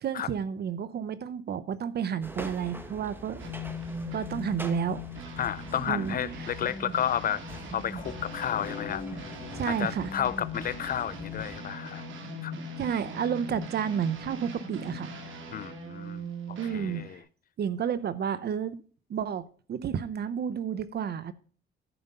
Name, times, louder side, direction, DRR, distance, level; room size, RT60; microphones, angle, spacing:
voice 1, 0.0-3.5 4.1-5.0 5.9-6.5 9.5-10.1 12.8-15.1 16.6-17.2 17.6-18.8 19.1-19.4 19.7-21.3, right 8 dB, 55° right, 0.7 m, -31 dB
sound 1, 2.2-11.6, equal, 10° right, 1.3 m, -45 dB
sound 2, 3.4-17.2, left 1 dB, 80° right, 2.0 m, -40 dB
voice 2, 5.4-9.3 9.6-12.0 12.4-12.5 15.5-17.2, left 10 dB, 45° left, 0.6 m, -32 dB
sound 3, 7.9-14.1, left 6 dB, 80° left, 2.4 m, -47 dB
11.0 x 5.1 x 5.5 m
cardioid pair, 90°, 20 cm